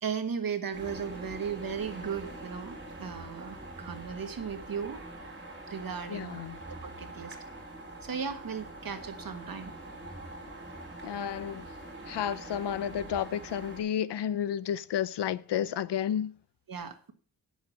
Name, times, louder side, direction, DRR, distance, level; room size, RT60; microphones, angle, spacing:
voice 1, 0.0-5.0 5.7-6.4 6.8-7.4 8.0-9.7 16.7-17.1, right 6 dB, 55° right, 1.5 m, -36 dB
sound 1, 0.7-13.8, right 2 dB, 25° right, 4.6 m, -44 dB
voice 2, 6.1-6.6 11.0-11.7 12.1-16.3, left 9 dB, 75° left, 0.6 m, -31 dB
9.3 x 7.1 x 6.3 m
wide cardioid pair, 105°, 42 cm